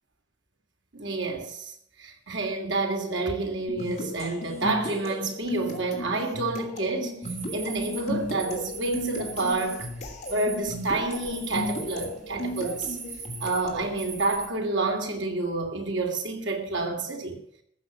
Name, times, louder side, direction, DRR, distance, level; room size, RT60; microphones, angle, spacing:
voice 1, 0.9-1.7 2.0-7.2 7.5-9.9 10.3-13.0 13.4-17.4, right 3 dB, 90° right, 2.9 m, -29 dB
sound 1, 3.7-13.9, left 1 dB, 40° left, 3.1 m, -35 dB
sound 2, 7.2-14.5, right 5 dB, 45° right, 3.7 m, -41 dB
14.5 x 7.1 x 9.0 m
head